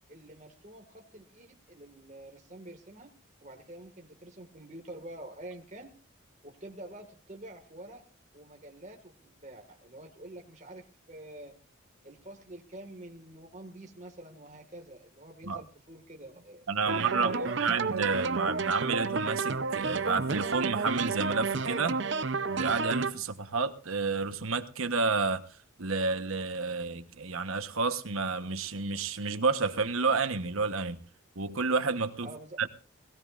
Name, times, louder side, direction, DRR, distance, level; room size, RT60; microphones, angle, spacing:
voice 1, 0.1-3.1 3.4-5.9 6.4-8.1 8.3-11.6 12.0-17.6 32.2-32.6, right 1 dB, 35° right, 2.0 m, -47 dB
voice 2, 16.7-17.3 17.6-22.0 22.5-25.4 25.8-31.0 31.4-32.3 32.6-32.7, right 4 dB, 80° right, 1.2 m, -30 dB
sound 1, 16.9-23.1, right 4 dB, 55° right, 0.7 m, -31 dB
20.0 x 16.5 x 2.6 m
head